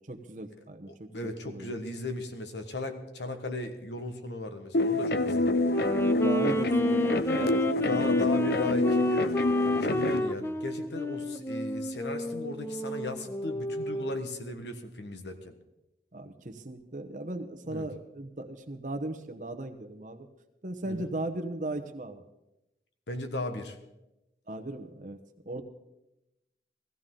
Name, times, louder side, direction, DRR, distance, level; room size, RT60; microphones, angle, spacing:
voice 1, 0.0-1.1 1.4-1.7 6.0-8.5 16.1-20.3 20.6-22.2 24.5-25.2 25.5-25.6, right 2 dB, 45° right, 7 dB, 0.9 m, -37 dB
voice 2, 0.9-5.6 7.9-9.3 9.6-15.5 17.6-17.9 20.8-21.1 23.1-23.8, left 2 dB, 85° left, 7 dB, 1.4 m, -37 dB
sound 1, 4.7-10.2, left 2 dB, 65° left, 0.6 m, -26 dB
Wind instrument woodwind instrument, 5.6-14.3, left 1 dB, 15° left, 0.4 m, -32 dB
16.5 x 15.0 x 3.8 m, 0.95 s
head